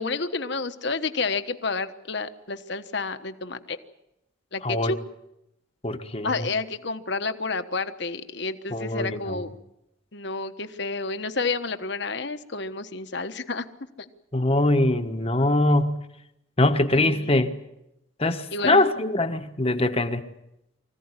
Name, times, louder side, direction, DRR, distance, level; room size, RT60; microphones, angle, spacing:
voice 1, 0.0-3.8 4.5-5.0 6.2-9.5 10.1-13.7 16.9-17.5 18.5-18.8, left 3 dB, 55° left, 9 dB, 1.3 m, -30 dB
voice 2, 5.8-6.5 8.7-9.4 14.3-16.0 16.6-17.5 18.2-20.2, left 2 dB, 30° left, 7 dB, 1.2 m, -23 dB
24.5 x 15.5 x 9.8 m, 0.85 s
head